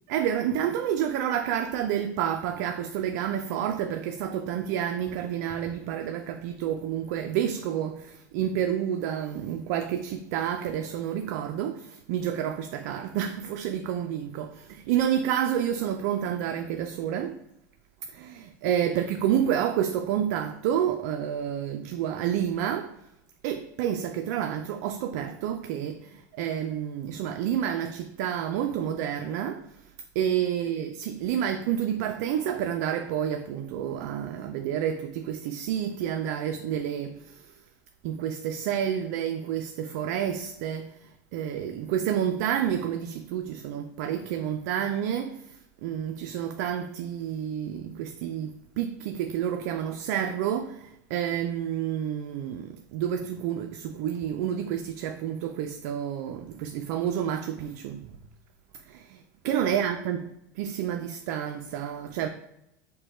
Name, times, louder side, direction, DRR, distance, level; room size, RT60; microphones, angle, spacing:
voice 1, 0.1-17.4 18.1-22.9 23.4-29.7 30.2-37.4 38.0-45.6 45.8-58.1 58.9-60.2 60.6-62.3, right 9 dB, 65° right, 0.3 m, -29 dB
5.3 x 2.1 x 4.2 m
supercardioid pair, 130°, 10 cm